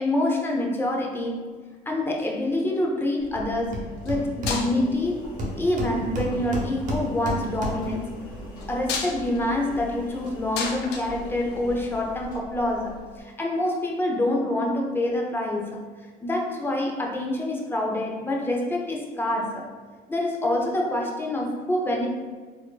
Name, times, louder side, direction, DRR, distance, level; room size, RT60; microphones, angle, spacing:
voice 1, 0.0-1.5 1.9-5.2 5.6-8.1 8.7-15.8 16.2-19.7 20.1-22.1, left 1 dB, 15° left, -1 dB, 0.6 m, -26 dB
sound 1, 2.0-2.8 4.0-4.2 4.5-5.1 6.0-6.5 8.6-12.0 13.3-13.4, left 5 dB, 85° left, 0.5 m, -34 dB
Engine, 3.2-13.2, equal, 55° left, 1.2 m, -42 dB
Hammer, 3.3-3.4 3.7-5.0 5.4-8.0, left 1 dB, 50° right, 0.9 m, -31 dB
4.1 x 2.6 x 2.3 m, 1.5 s
cardioid pair, 110°, 17 cm